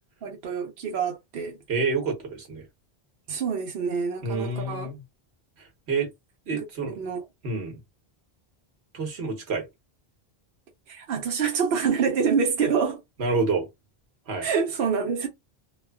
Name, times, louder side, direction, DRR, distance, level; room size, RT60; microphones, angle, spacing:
voice 1, 0.2-1.6 3.3-4.9 6.5-7.2 10.9-13.0 14.4-15.3, right 6 dB, 70° right, 0.9 m, -26 dB
voice 2, 1.7-2.6 4.2-5.0 5.9-6.1 6.5-7.1 7.4-7.8 8.9-9.7 13.2-13.7 14.3-14.5, right 3 dB, 85° right, 1.2 m, -28 dB
3.1 x 2.2 x 2.2 m
omnidirectional pair, 1.1 m